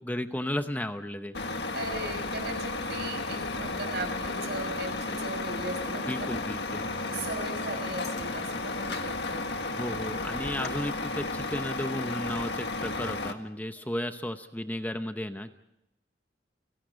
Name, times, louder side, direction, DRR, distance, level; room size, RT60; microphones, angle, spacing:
voice 1, 0.0-1.3 6.1-6.9 9.8-15.5, left 1 dB, 10° left, 8 dB, 0.8 m, -34 dB
Truck, 1.3-13.3, left 3 dB, 65° left, 1.7 m, -33 dB
voice 2, 1.7-6.3 7.1-9.5, right 2 dB, 65° right, 6 dB, 5.7 m, -37 dB
30.0 x 18.0 x 5.2 m, 0.90 s
head